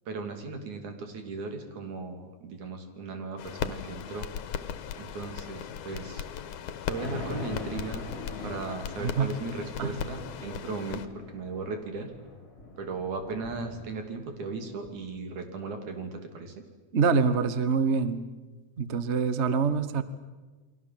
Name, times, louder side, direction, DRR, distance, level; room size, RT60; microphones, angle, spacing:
voice 1, 0.1-4.3 5.0-6.3 6.9-8.0 8.4-12.1 12.8-16.5, right 4 dB, 80° right, 5 dB, 4.2 m, -37 dB
sound 1, 3.4-11.1, left 8 dB, 90° left, 2.7 m, -38 dB
Thunder, 6.3-14.4 14.8-14.9, left 2 dB, 30° left, 5.1 m, -42 dB
voice 2, 9.0-9.3 9.8-10.0 16.9-18.3 18.8-20.0, right 5 dB, 45° right, 12 dB, 0.8 m, -25 dB
29.5 x 23.0 x 7.6 m, 1.3 s
omnidirectional pair, 3.4 m